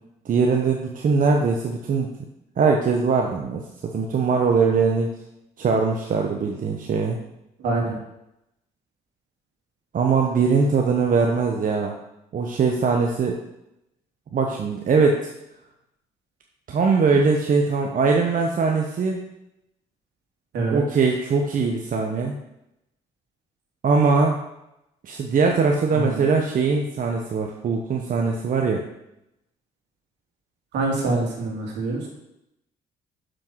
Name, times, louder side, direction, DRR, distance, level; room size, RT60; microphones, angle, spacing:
voice 1, 0.2-2.1 2.6-5.1 5.6-7.2 9.9-11.9 12.3-13.4 14.3-15.3 16.7-19.2 20.7-22.4 23.8-24.4 25.0-28.8, right 4 dB, 50° right, 2 dB, 1.0 m, -21 dB
voice 2, 7.6-8.0 20.5-20.8 25.9-26.2 30.7-32.0, right 3 dB, 70° right, -1 dB, 2.6 m, -25 dB
7.0 x 6.4 x 4.6 m, 0.87 s
hypercardioid pair, 60°, 18 cm